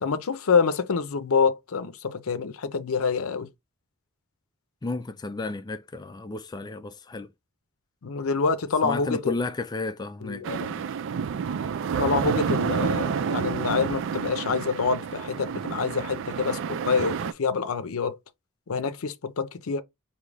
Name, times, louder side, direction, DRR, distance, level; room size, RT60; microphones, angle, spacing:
voice 1, 0.0-3.5 8.0-9.3 10.2-10.8 12.0-18.2 18.7-19.8, left 5 dB, 70° left, 0.6 m, -26 dB
voice 2, 4.8-7.3 8.8-10.4, left 3 dB, 20° left, 0.3 m, -32 dB
sound 1, 10.4-17.3, right 6 dB, 60° right, 0.4 m, -29 dB
5.0 x 2.8 x 3.3 m
head